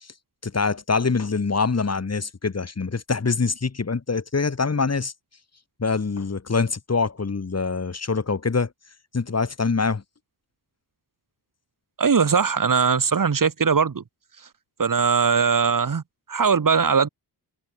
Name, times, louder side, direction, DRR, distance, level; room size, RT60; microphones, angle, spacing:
voice 1, 0.4-5.1 5.8-8.7 9.1-10.0, left 4 dB, 40° left, 5.7 m, -24 dB
voice 2, 12.0-14.0 14.8-16.0 16.3-17.1, right 6 dB, 55° right, 6.0 m, -20 dB
cardioid pair, 85°, 39 cm